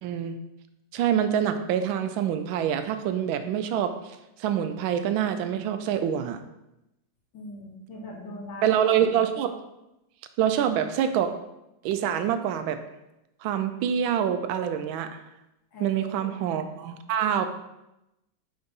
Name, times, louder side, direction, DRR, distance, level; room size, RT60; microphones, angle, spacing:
voice 1, 0.0-0.3 0.9-6.4 8.6-9.6 10.4-11.3 11.8-12.8 13.4-15.2 15.8-17.5, right 9 dB, 90° right, 9 dB, 1.4 m, -26 dB
voice 2, 7.3-8.7 15.7-16.4, left 1 dB, 70° left, -2 dB, 2.1 m, -40 dB
5.2 x 4.8 x 4.0 m, 0.91 s
omnidirectional pair, 2.1 m